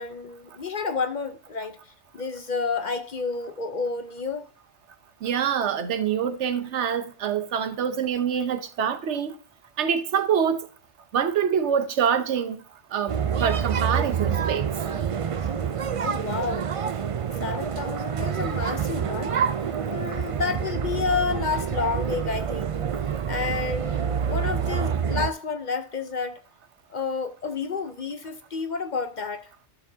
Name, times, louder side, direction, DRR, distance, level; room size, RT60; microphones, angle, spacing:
voice 1, 0.0-1.8 2.1-4.4 16.0-16.7 17.4-19.3 19.6-22.8 23.3-26.4 26.9-29.4, left 4 dB, 45° left, 0.7 m, -30 dB
voice 2, 5.2-9.4 9.8-10.6 11.1-12.6 12.9-14.7, right 8 dB, 80° right, 1.1 m, -25 dB
sound 1, 13.1-25.3, right 7 dB, 55° right, 0.3 m, -27 dB
12.5 x 6.8 x 2.7 m
omnidirectional pair, 1.2 m